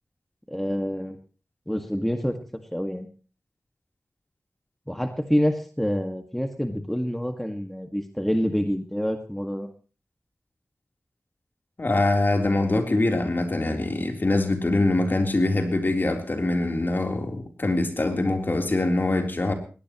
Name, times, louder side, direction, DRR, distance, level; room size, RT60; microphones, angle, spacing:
voice 1, 0.5-1.2 1.7-2.4 2.7-3.1 4.9-9.7, equal, 5° left, 5 dB, 1.9 m, -27 dB
voice 2, 11.8-19.5, left 2 dB, 45° left, 4 dB, 3.6 m, -23 dB
20.5 x 18.0 x 3.1 m, 0.37 s
wide cardioid pair, 70°, 5 cm